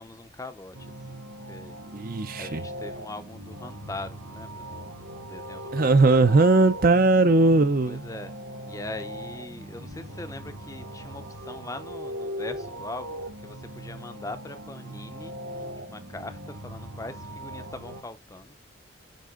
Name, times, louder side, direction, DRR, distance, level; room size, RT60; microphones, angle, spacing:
voice 1, 0.0-1.8 2.4-6.3 7.8-8.3 8.6-18.5, left 2 dB, 15° left, 0.6 m, -41 dB
sound 1, 0.7-18.0, equal, 90° right, 3.2 m, -39 dB
voice 2, 1.9-2.6 5.7-8.0, right 3 dB, 45° right, 0.6 m, -19 dB
9.4 x 3.6 x 3.7 m
head